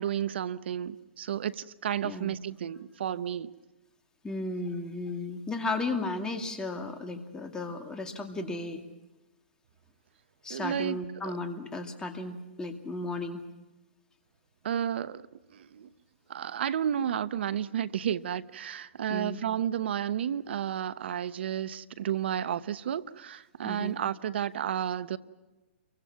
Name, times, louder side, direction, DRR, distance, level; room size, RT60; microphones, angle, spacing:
voice 1, 0.0-3.5 10.5-11.0 11.2-11.3 14.6-15.9 16.3-25.2, right 9 dB, 65° right, 1.1 m, -32 dB
voice 2, 2.0-2.3 4.2-8.8 10.4-13.4 19.1-19.4 23.6-24.0, left 2 dB, 10° left, 2.3 m, -34 dB
29.0 x 23.5 x 6.0 m
hypercardioid pair, 130°, 6 cm